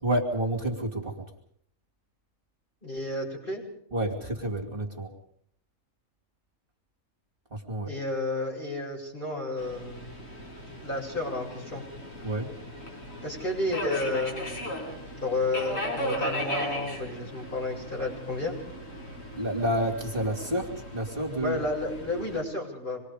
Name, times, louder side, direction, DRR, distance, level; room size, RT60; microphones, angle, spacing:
voice 1, 0.0-1.3 3.9-5.1 7.5-7.9 12.2-12.5 19.3-21.6, right 1 dB, 40° right, 2 dB, 3.0 m, -29 dB
voice 2, 2.8-3.6 7.8-10.1 10.8-11.8 13.2-14.7 15.2-18.6 21.4-23.0, left 2 dB, 35° left, -3 dB, 7.9 m, -31 dB
Subway metro underground, 9.6-22.4, equal, 70° left, 6.1 m, -37 dB
27.0 x 22.0 x 5.1 m, 0.66 s
omnidirectional pair, 1.5 m